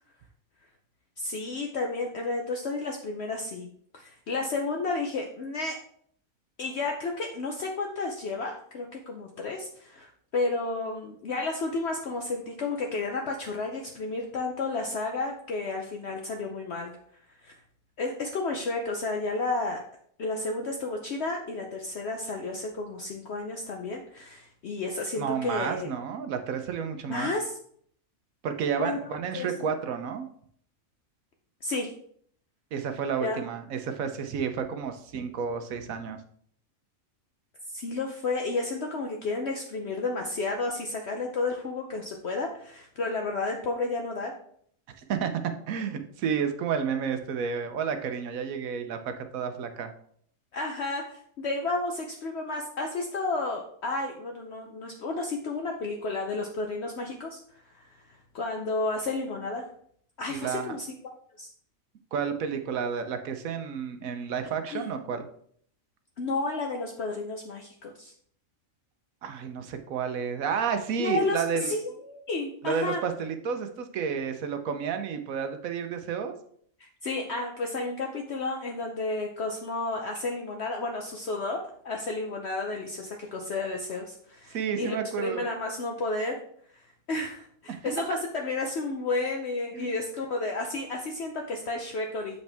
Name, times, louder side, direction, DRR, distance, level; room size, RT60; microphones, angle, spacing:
voice 1, 1.2-3.7 3.9-5.8 6.6-16.9 17.4-17.6 18.0-19.8 20.2-25.9 27.1-27.6 28.8-29.5 31.6-31.9 33.2-33.4 37.7-44.3 50.5-57.4 57.7-57.8 58.3-59.7 60.2-61.0 61.4-61.5 64.7-65.1 66.2-68.1 71.0-73.0 76.8-86.4 86.7-86.8 87.1-92.4, left 3 dB, 60° left, 2 dB, 0.9 m, -32 dB
voice 2, 25.2-27.3 28.4-30.2 32.7-36.2 45.1-45.3 45.7-49.9 60.3-60.7 62.1-65.3 69.2-71.7 72.6-76.3 84.5-85.5 87.7-87.9 89.8-89.9, right 6 dB, 80° right, 7 dB, 1.2 m, -31 dB
7.2 x 5.3 x 3.4 m, 0.62 s
omnidirectional pair, 1.4 m